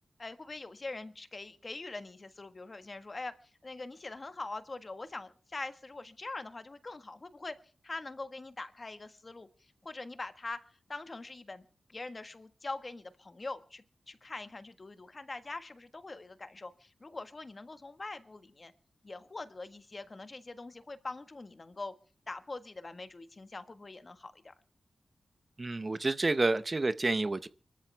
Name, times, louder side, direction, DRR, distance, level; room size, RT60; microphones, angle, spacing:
voice 1, 0.2-7.6 7.8-18.7 19.0-21.9 22.3-24.5, left 3 dB, 35° left, 1.5 m, -43 dB
voice 2, 25.6-27.5, right 2 dB, 30° right, 0.7 m, -29 dB
25.0 x 14.0 x 3.4 m
wide cardioid pair, 105°, 0 cm